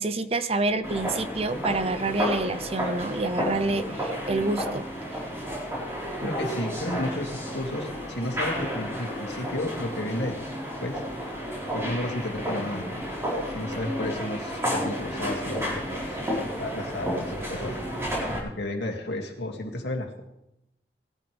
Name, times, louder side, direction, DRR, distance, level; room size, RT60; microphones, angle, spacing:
voice 1, 0.0-4.9 6.2-6.3, right 2 dB, 35° right, 11 dB, 0.7 m, -27 dB
sound 1, 0.8-18.4, equal, 15° right, 4.4 m, -32 dB
voice 2, 6.2-10.4 10.8-11.4 11.7-13.0 13.5-16.2 16.6-17.8 18.4-20.2, left 1 dB, 90° left, 1 dB, 2.5 m, -33 dB
19.0 x 12.5 x 3.5 m, 0.84 s
head